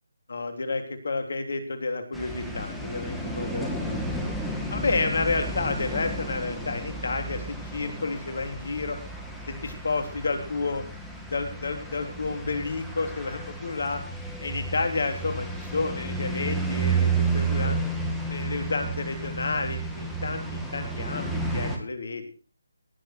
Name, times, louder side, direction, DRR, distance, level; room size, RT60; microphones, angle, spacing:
voice 1, 0.3-4.1 4.7-9.0 9.5-10.8 11.3-14.0 14.4-17.8 18.3-22.2, left 3 dB, 60° left, 6 dB, 3.4 m, -30 dB
sound 1, 2.1-21.8, right 3 dB, ahead, 2.1 m, -32 dB
18.5 x 9.5 x 4.5 m, 0.37 s
figure-of-eight pair, 155°, 0 cm